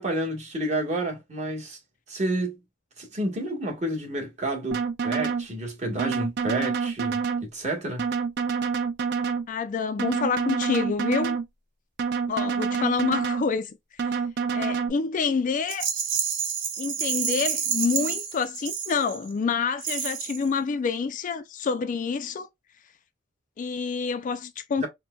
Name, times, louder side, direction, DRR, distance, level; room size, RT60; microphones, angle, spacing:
voice 1, 0.0-1.8 2.1-2.5 3.0-8.1 24.8-24.9, right 1 dB, 35° right, 1.2 m, -30 dB
sound 1, 4.7-5.5 6.0-7.5 8.0-9.5 10.0-11.5 12.0-13.5 14.0-14.9, right 5 dB, 60° right, 0.4 m, -27 dB
voice 2, 9.5-11.4 12.3-13.8 14.0-14.2 14.5-15.9 16.8-22.5 23.6-24.9, left 5 dB, 40° left, 0.3 m, -27 dB
Rattle, 15.7-19.3 19.8-20.5, right 7 dB, 75° right, 0.9 m, -29 dB
4.3 x 2.1 x 2.2 m
head